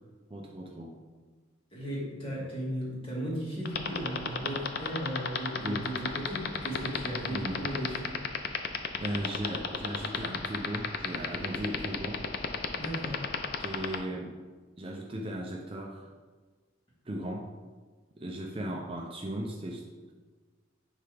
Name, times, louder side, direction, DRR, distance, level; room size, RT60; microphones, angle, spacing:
voice 1, 0.3-0.9 5.6-5.8 7.3-7.5 9.0-12.2 13.6-14.3 14.8-16.1 17.1-17.5 18.2-19.8, right 1 dB, 25° right, 0 dB, 0.5 m, -36 dB
voice 2, 1.7-8.2 12.7-13.2, equal, 25° left, -6 dB, 1.8 m, -36 dB
sound 1, 3.6-14.0, left 7 dB, 50° left, 0.4 m, -30 dB
9.7 x 3.3 x 3.4 m, 1.4 s
head